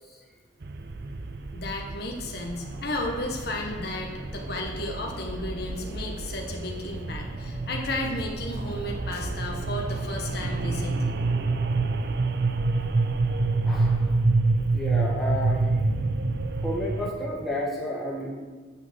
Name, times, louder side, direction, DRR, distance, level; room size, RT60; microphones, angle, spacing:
sound 1, 0.6-17.1, right 3 dB, 55° right, 0.5 m, -28 dB
voice 1, 1.5-11.1, left 2 dB, 55° left, 0 dB, 1.1 m, -33 dB
Fixed-wing aircraft airplane, 2.4-14.3, equal, 25° right, 1.4 m, -46 dB
voice 2, 13.6-14.1 14.6-15.9 16.6-18.3, left 1 dB, ahead, -5 dB, 1.7 m, -31 dB
8.0 x 5.9 x 6.1 m, 1.4 s
head